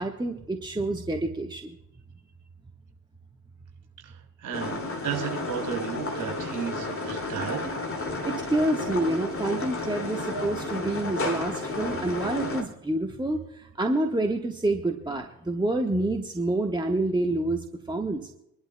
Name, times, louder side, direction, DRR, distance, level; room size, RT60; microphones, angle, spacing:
voice 1, 0.0-1.8 8.2-18.3, right 2 dB, 10° right, 3 dB, 1.3 m, -28 dB
voice 2, 4.0-7.8, right 7 dB, 50° right, 1 dB, 5.6 m, -34 dB
sound 1, 4.5-12.6, left 2 dB, 30° left, 2.7 m, -32 dB
25.0 x 11.5 x 2.3 m, 0.80 s
figure-of-eight pair, 45°, 42 cm